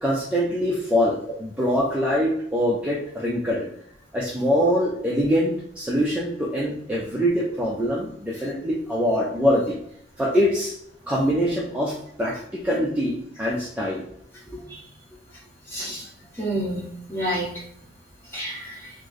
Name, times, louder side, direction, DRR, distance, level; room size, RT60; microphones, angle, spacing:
voice 1, 0.0-3.7 4.1-9.8 10.2-10.7 11.1-14.0 14.5-14.6, equal, 5° right, -5 dB, 0.4 m, -24 dB
voice 2, 15.7-16.0 16.4-17.5 18.3-18.9, right 1 dB, 10° left, -5 dB, 1.0 m, -29 dB
3.2 x 2.0 x 3.7 m, 0.68 s
head